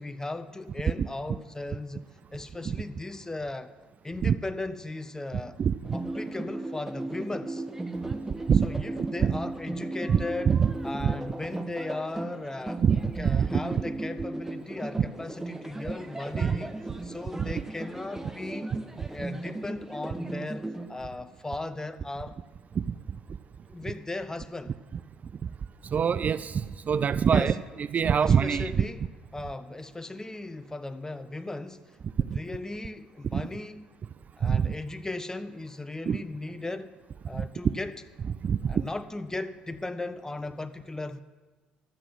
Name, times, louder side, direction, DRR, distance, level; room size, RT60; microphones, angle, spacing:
voice 1, 0.0-3.7 4.0-5.6 5.9-7.6 8.6-10.6 10.8-12.8 13.2-16.7 17.0-18.7 19.1-22.4 23.7-24.8 27.3-27.6 28.1-34.0 34.4-36.9 37.3-38.0 38.7-41.2, left 2 dB, 15° left, 11 dB, 0.7 m, -37 dB
sound 1, 5.8-20.9, right 2 dB, 10° right, 1.0 m, -36 dB
voice 2, 9.0-9.3 10.1-10.2 10.5-10.7 11.0-11.1 12.8-13.0 13.2-13.5 16.3-16.6 17.4-17.5 22.9-23.0 25.9-26.6 26.9-28.8 32.3-32.4 33.3-33.4 34.4-34.7 36.1-36.2 37.3-37.5 38.4-38.8, right 7 dB, 40° right, 15 dB, 0.3 m, -24 dB
12.5 x 7.9 x 6.3 m, 1.3 s
hypercardioid pair, 55°, 4 cm